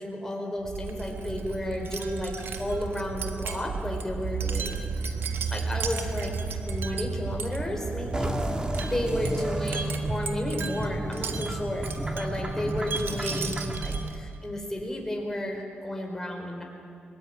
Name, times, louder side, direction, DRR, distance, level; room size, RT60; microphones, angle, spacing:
voice 1, 0.0-4.8 5.5-6.3 6.7-8.3 8.8-16.6, left 1 dB, 15° left, 1 dB, 4.8 m, -32 dB
Wind chime, 0.6-14.4, right 5 dB, 85° right, 1.5 m, -33 dB
sound 1, 8.1-13.9, right 1 dB, 25° right, 2.4 m, -32 dB
23.0 x 19.5 x 9.3 m, 2.5 s
cardioid pair, 85°, 4 cm